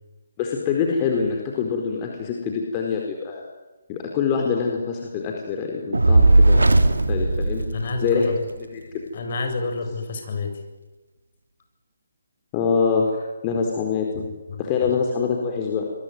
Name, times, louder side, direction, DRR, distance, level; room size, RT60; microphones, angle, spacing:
voice 1, 0.4-3.4 3.9-6.8 7.1-7.6 8.0-9.0 12.5-14.3 14.6-15.9, left 5 dB, 25° left, 1 dB, 4.5 m, -25 dB
Fire, 5.9-8.4, right 2 dB, 75° right, 2.5 m, -17 dB
voice 2, 7.7-8.4 9.1-10.5 14.1-14.6, left 3 dB, 45° left, 5 dB, 7.5 m, -29 dB
26.5 x 23.5 x 9.6 m, 1.2 s
figure-of-eight pair, 145°, 0 cm